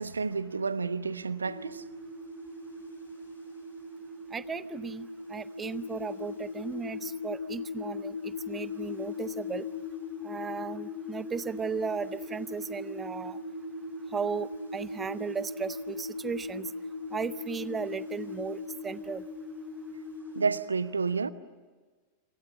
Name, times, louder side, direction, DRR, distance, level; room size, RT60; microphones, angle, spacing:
voice 1, 0.0-1.8 20.3-21.3, right 4 dB, 75° right, 1.0 m, -30 dB
sound 1, 1.4-20.4, left 3 dB, 70° left, 5.5 m, -39 dB
voice 2, 4.3-9.7 10.2-13.4 14.1-16.7 17.1-19.2, right 5 dB, 20° right, 0.8 m, -36 dB
28.0 x 27.5 x 7.7 m
figure-of-eight pair, 90°, 0 cm